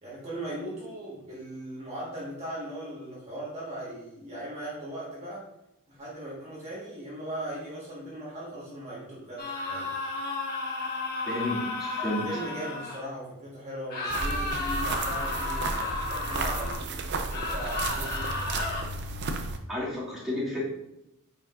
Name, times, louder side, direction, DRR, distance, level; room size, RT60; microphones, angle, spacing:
voice 1, 0.0-5.5 5.9-9.9 12.0-18.5, right 1 dB, 30° right, -7 dB, 1.5 m, -39 dB
sound 1, 9.4-13.0 13.9-16.8 17.3-18.8, left 2 dB, 40° left, 1.6 m, -33 dB
voice 2, 11.3-12.3 19.7-20.6, left 1 dB, ahead, -9 dB, 2.3 m, -31 dB
sound 2, 14.1-19.6, right 3 dB, 50° right, 0.6 m, -33 dB
9.2 x 5.0 x 2.5 m, 0.87 s
head